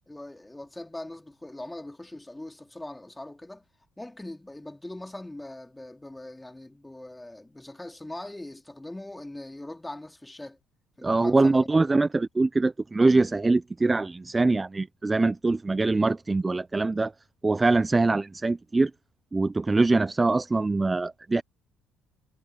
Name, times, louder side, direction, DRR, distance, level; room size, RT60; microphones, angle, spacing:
voice 1, 0.1-3.7 4.0-10.6 11.0-11.7, left 1 dB, 10° left, 4.2 m, -41 dB
voice 2, 11.0-17.1 17.4-18.9 19.3-21.4, right 3 dB, 20° right, 0.7 m, -23 dB
hypercardioid pair, 65°, 0 cm